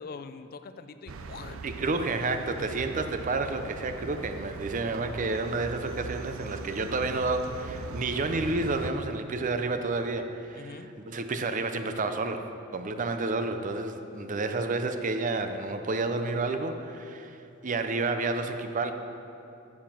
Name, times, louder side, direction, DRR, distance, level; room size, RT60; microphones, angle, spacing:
voice 1, 0.0-1.7 2.5-2.8 10.6-10.9, left 4 dB, 45° left, 11 dB, 0.4 m, -43 dB
sound 1, 1.1-8.9, right 4 dB, 85° right, 0.5 m, -40 dB
voice 2, 1.6-12.5 12.7-18.9, right 3 dB, 40° right, 8 dB, 0.5 m, -30 dB
8.7 x 7.4 x 6.0 m, 2.7 s
head